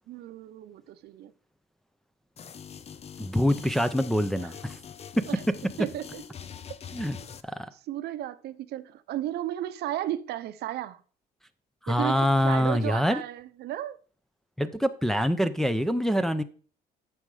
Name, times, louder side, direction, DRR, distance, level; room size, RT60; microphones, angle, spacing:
voice 1, 0.1-1.3 4.4-4.5 5.3-5.4 5.8-6.2 7.0-7.3 7.9-11.0 11.9-14.0, right 12 dB, 70° right, 0.8 m, -34 dB
sound 1, 2.4-7.4, left 7 dB, 40° left, 0.7 m, -44 dB
voice 2, 3.2-4.8 5.2-5.3 6.9-7.2 7.4-7.7 11.8-13.2 14.6-16.4, equal, ahead, 0.7 m, -25 dB
9.2 x 6.6 x 4.9 m
cardioid pair, 110°, 17 cm